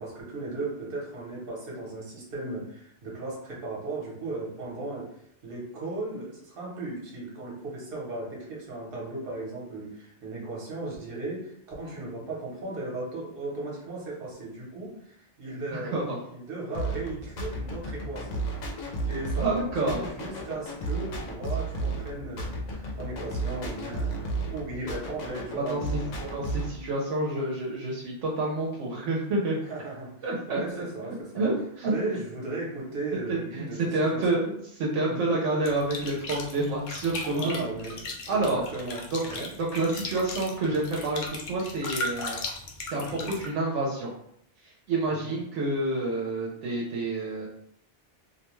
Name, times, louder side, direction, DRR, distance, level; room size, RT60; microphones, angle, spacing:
voice 1, 0.0-5.1 5.4-16.0 16.3-18.4 19.0-25.9 26.2-26.3 26.7-26.8 29.6-31.5 31.8-34.5 35.0-35.3 37.3-39.5 43.1-43.3 45.2-45.3, right 2 dB, 55° right, -4 dB, 1.0 m, -36 dB
voice 2, 15.7-16.2 19.4-20.0 25.6-25.8 26.3-29.6 30.2-30.8 31.4-31.9 33.3-34.5 34.8-37.6 38.3-38.6 39.1-39.2 39.6-42.4 42.9-44.1 44.6-47.5, right 2 dB, 80° right, -3 dB, 0.9 m, -28 dB
pbriddim mgreel, 16.7-26.8, right 2 dB, 85° left, 1.0 m, -33 dB
sound 1, 35.6-43.5, left 2 dB, 60° left, 0.5 m, -37 dB
2.5 x 2.2 x 3.0 m, 0.70 s
omnidirectional pair, 1.2 m